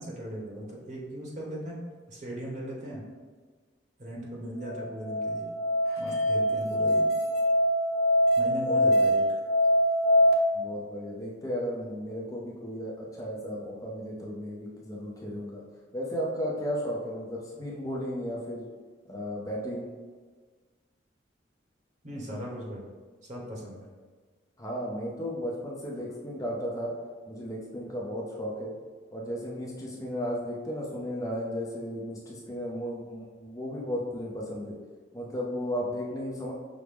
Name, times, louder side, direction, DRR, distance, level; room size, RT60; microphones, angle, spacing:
voice 1, 0.0-1.8 2.1-3.0 4.0-5.4 6.0-7.0 8.4-9.4 22.0-22.8 23.3-23.9, equal, 40° right, -3 dB, 1.0 m, -38 dB
Musical instrument, 4.7-10.3, equal, 55° left, 0.7 m, -23 dB
voice 2, 10.5-15.6 15.9-18.6 19.1-19.9 24.6-26.9 27.3-28.7 29.1-34.8 35.1-36.5, equal, 20° left, -4 dB, 0.5 m, -34 dB
5.9 x 2.0 x 3.4 m, 1.4 s
head